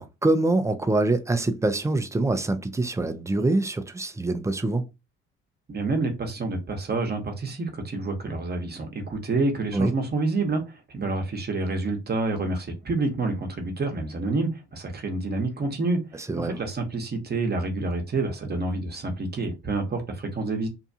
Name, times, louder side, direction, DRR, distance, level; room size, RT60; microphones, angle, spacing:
voice 1, 0.0-4.9 9.7-9.9 16.3-16.6, right 2 dB, 10° right, 0.5 m, -24 dB
voice 2, 5.7-16.0 16.4-20.7, right 3 dB, 35° right, 1.0 m, -28 dB
2.7 x 2.2 x 2.7 m
hypercardioid pair, 60°, 29 cm